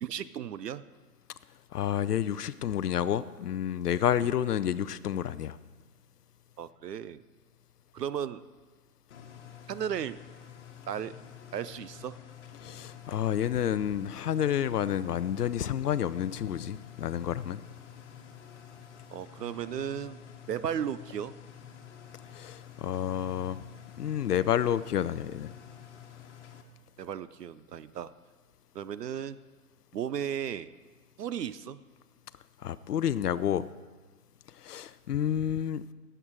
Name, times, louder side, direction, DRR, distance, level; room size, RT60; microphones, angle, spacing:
voice 1, 0.0-0.8 6.6-7.2 7.9-8.4 9.7-10.2 10.9-11.1 11.5-12.2 19.1-20.2 20.5-21.3 27.0-28.1 28.7-29.4 29.9-30.7 31.2-31.8, right 9 dB, 80° right, 16 dB, 0.6 m, -35 dB
voice 2, 1.7-5.6 12.6-17.6 22.3-23.6 24.0-25.5 32.6-33.7 34.5-35.9, left 10 dB, 75° left, 16 dB, 0.6 m, -29 dB
sound 1, 9.1-26.6, left 9 dB, 50° left, 1.2 m, -49 dB
16.0 x 7.9 x 4.7 m, 1.4 s
figure-of-eight pair, 140°, 48 cm